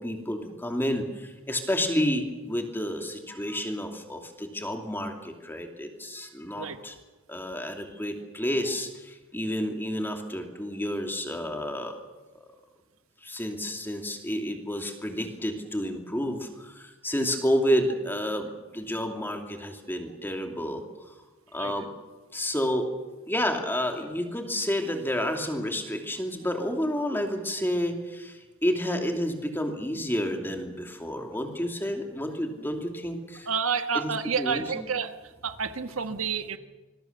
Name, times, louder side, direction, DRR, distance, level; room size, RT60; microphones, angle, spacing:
voice 1, 0.0-6.9 7.3-12.0 13.2-21.1 21.5-21.9 22.3-22.9 23.3-33.5 33.9-34.1 34.4-34.9 36.0-36.1, equal, 10° left, 3 dB, 2.7 m, -30 dB
voice 2, 33.5-35.2 35.4-36.6, right 6 dB, 85° right, 9 dB, 1.3 m, -29 dB
26.0 x 21.0 x 6.9 m, 1.2 s
head